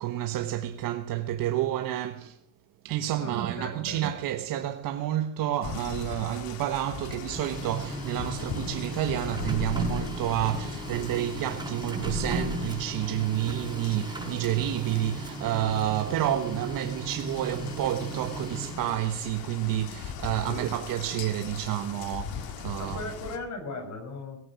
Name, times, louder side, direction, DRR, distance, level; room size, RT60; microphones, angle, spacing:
voice 1, 0.0-2.4 2.8-23.0, right 12 dB, 60° right, 1.3 m, -29 dB
voice 2, 3.2-4.1 20.4-21.4 22.8-24.4, left 3 dB, 50° left, 6.4 m, -39 dB
sound 1, 5.6-23.4, left 8 dB, 70° left, 2.2 m, -40 dB
Printer, 6.9-19.0, right 1 dB, 10° right, 5.9 m, -36 dB
18.0 x 8.8 x 7.5 m
cardioid pair, 110°, 37 cm